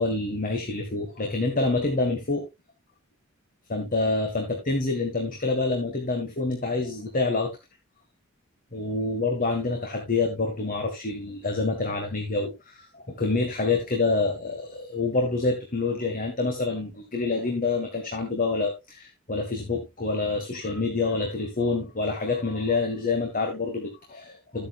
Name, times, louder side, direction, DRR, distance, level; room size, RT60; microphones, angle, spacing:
voice 1, 0.0-2.5 3.7-7.5 8.7-24.7, left 3 dB, 40° left, 3 dB, 1.7 m, -27 dB
12.5 x 8.9 x 2.5 m, 0.22 s
head